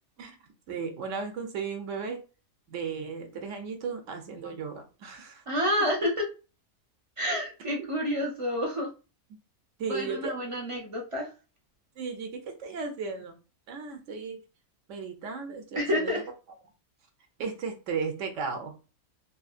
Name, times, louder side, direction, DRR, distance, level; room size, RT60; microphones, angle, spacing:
voice 1, 0.2-2.2 2.7-5.4 7.6-7.9 9.8-10.3 12.0-13.3 13.7-14.4 14.9-16.2 17.4-18.8, right 5 dB, 65° right, 5 dB, 1.0 m, -35 dB
voice 2, 5.5-6.2 7.2-8.9 9.8-11.3 15.7-16.2, equal, 35° right, -1 dB, 0.5 m, -29 dB
3.0 x 2.6 x 2.4 m, 0.32 s
omnidirectional pair, 1.5 m